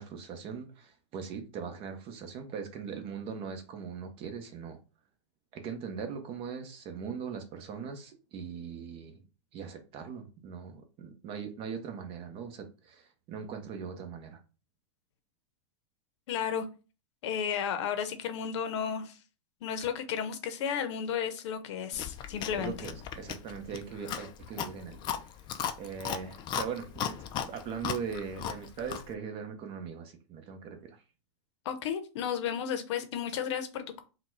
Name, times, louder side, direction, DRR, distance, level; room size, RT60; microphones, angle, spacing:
voice 1, 0.0-4.8 5.5-9.1 9.5-14.4 22.6-25.0 25.8-31.0, right 6 dB, 35° right, 0.9 m, -40 dB
voice 2, 16.3-16.7 17.2-19.2 19.6-22.9 31.6-34.0, left 8 dB, 65° left, 0.8 m, -33 dB
Chewing mastication, 21.9-29.1, left 8 dB, 30° left, 0.4 m, -37 dB
3.9 x 2.3 x 4.6 m
hypercardioid pair, 135°, 16 cm